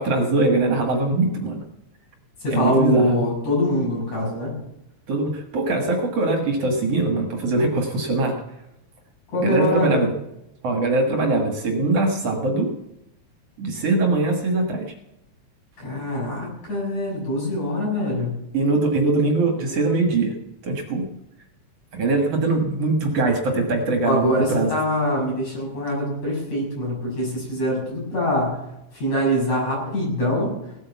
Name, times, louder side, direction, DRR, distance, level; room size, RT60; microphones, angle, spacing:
voice 1, 0.0-1.6 2.5-3.1 5.1-8.4 9.3-10.1 10.6-12.7 13.6-14.9 18.5-20.3 20.6-21.0 21.9-24.7, right 2 dB, 55° right, 3 dB, 2.6 m, -22 dB
voice 2, 2.4-4.5 9.3-10.0 15.8-18.3 24.0-28.5 28.9-30.5, equal, 65° left, -3 dB, 8.2 m, -23 dB
17.5 x 8.6 x 7.1 m, 0.86 s
omnidirectional pair, 3.5 m